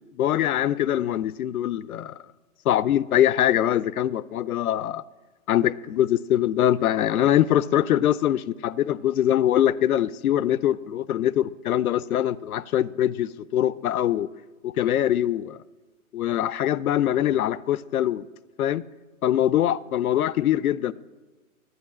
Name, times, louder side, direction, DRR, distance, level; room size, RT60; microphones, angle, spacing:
voice 1, 0.2-2.2 2.7-5.0 5.5-14.3 14.6-15.6 16.1-18.2 18.6-18.8 19.2-20.9, left 11 dB, 80° left, 0.6 m, -23 dB
12.5 x 8.9 x 7.4 m
hypercardioid pair, 165°, 43 cm